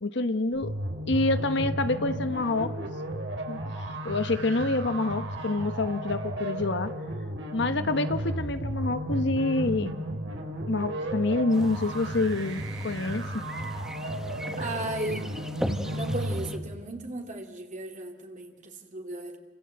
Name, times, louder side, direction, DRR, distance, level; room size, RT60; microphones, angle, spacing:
voice 1, 0.0-0.7 1.1-2.7 3.5-3.6 4.0-6.9 7.5-9.9 10.7-13.4, left 2 dB, 65° left, 10 dB, 1.1 m, -27 dB
sound 1, 0.5-16.5, right 1 dB, 75° right, 4.9 m, -34 dB
sound 2, 11.5-16.6, equal, 5° right, 1.5 m, -38 dB
voice 2, 14.6-15.3 15.9-19.4, right 2 dB, 40° right, 2 dB, 2.5 m, -35 dB
29.0 x 25.0 x 7.9 m, 1.3 s
head